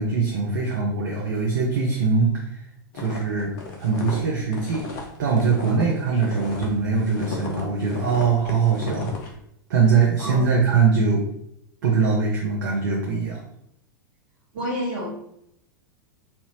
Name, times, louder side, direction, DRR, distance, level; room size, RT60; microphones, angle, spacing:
voice 1, 0.0-2.6 2.9-4.8 5.2-9.1 9.7-11.2 11.8-13.4, right 5 dB, 60° right, -2 dB, 0.7 m, -22 dB
sound 1, 2.9-6.7 7.0-9.3, left 3 dB, 50° left, 0.9 m, -34 dB
voice 2, 14.5-15.1, equal, 45° right, -3 dB, 1.5 m, -29 dB
4.4 x 2.7 x 2.9 m, 0.75 s
figure-of-eight pair, 90°, 11 cm